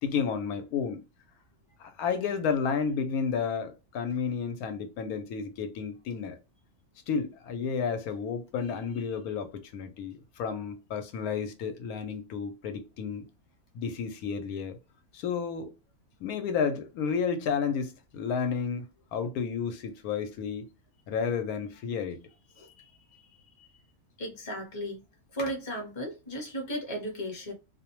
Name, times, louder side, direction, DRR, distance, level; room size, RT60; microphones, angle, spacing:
voice 1, 0.0-1.0 1.8-6.4 7.1-13.3 13.7-14.8 15.1-15.7 16.2-18.8 19.1-20.7 21.1-22.2, left 6 dB, 85° left, 1.1 m, -31 dB
voice 2, 24.2-25.0 25.3-27.5, equal, 25° left, 0.7 m, -35 dB
2.5 x 2.1 x 2.9 m
omnidirectional pair, 1.5 m